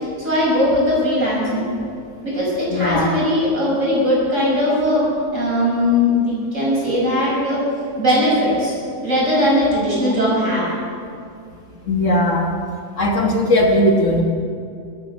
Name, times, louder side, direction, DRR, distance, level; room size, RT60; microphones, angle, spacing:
voice 1, 0.2-1.6 2.2-5.1 5.3-7.6 8.0-8.8 9.0-10.7, left 1 dB, 50° right, -5 dB, 5.9 m, -19 dB
voice 2, 2.7-3.1 9.9-10.0 11.9-12.5 13.0-14.2, left 1 dB, 50° left, 1 dB, 1.6 m, -17 dB
22.0 x 9.7 x 6.2 m, 2.3 s
omnidirectional pair, 1.7 m